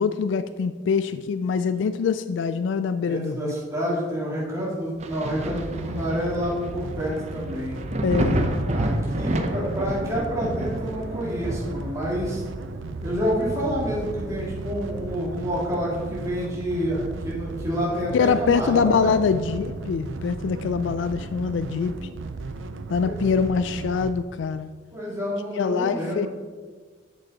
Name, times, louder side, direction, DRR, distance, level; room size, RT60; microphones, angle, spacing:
voice 1, 0.0-3.5 8.0-8.5 18.1-22.1 22.9-24.7 25.5-26.3, left 5 dB, 70° left, 12 dB, 0.3 m, -24 dB
voice 2, 3.1-7.8 8.7-12.4 13.0-19.2 23.0-23.3 24.9-26.3, equal, 15° right, -7 dB, 2.2 m, -28 dB
Thunder, 5.0-16.3 16.7-18.3 18.6-18.7 19.3-20.6 22.0-22.1, right 1 dB, 35° right, 0.7 m, -31 dB
sound 1, 5.2-24.1, right 3 dB, 80° right, 0.5 m, -35 dB
8.3 x 6.8 x 4.1 m, 1.5 s
head